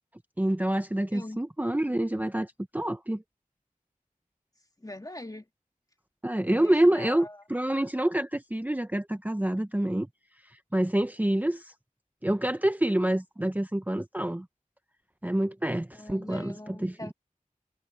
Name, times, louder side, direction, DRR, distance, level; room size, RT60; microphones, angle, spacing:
voice 1, 0.4-3.2 6.2-10.1 10.7-11.7 12.2-14.5 15.2-17.0, right 1 dB, 10° right, 0.6 m, -27 dB
voice 2, 4.8-5.5 6.5-7.4 15.9-17.1, left 1 dB, 25° left, 1.7 m, -42 dB
wide cardioid pair, 55°, 14 cm